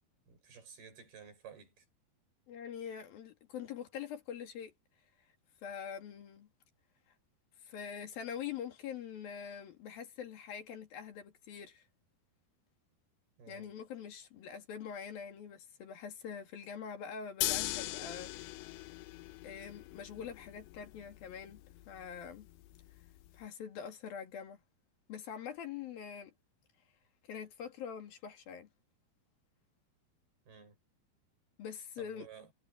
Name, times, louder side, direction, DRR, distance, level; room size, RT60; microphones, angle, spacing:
voice 1, 0.3-1.9 13.4-13.7 30.5-30.8 32.0-32.5, right 7 dB, 75° right, 9.0 m, -53 dB
voice 2, 2.5-4.7 5.6-6.5 7.6-11.8 13.5-18.3 19.4-21.6 21.9-22.5 23.3-24.6 25.1-26.3 27.3-28.7 31.6-32.3, left 7 dB, 65° left, 4.0 m, -44 dB
sound 1, 17.4-23.4, left 18 dB, 85° left, 2.6 m, -41 dB
omnidirectional pair, 4.6 m